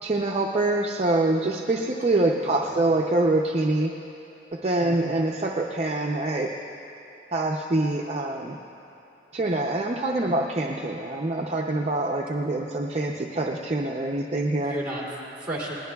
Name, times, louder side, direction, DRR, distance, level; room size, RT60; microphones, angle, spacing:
voice 1, 0.0-3.9 4.6-6.5 7.3-8.6 9.3-14.7, right 2 dB, 35° right, -1 dB, 0.5 m, -25 dB
voice 2, 2.4-3.0 4.8-5.1 14.6-15.7, right 1 dB, 10° right, -4 dB, 2.6 m, -34 dB
20.5 x 19.0 x 2.3 m, 2.8 s
head